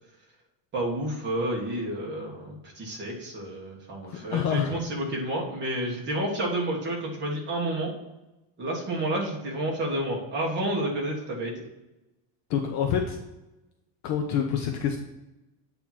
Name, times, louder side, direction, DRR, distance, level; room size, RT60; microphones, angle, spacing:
voice 1, 0.7-7.9 8.6-11.6, right 1 dB, 25° right, -2 dB, 1.4 m, -30 dB
voice 2, 4.0-4.8 12.5-13.2 14.0-15.0, left 8 dB, 35° left, 3 dB, 0.5 m, -27 dB
8.6 x 2.9 x 5.8 m, 0.99 s
cardioid pair, 175°, 47 cm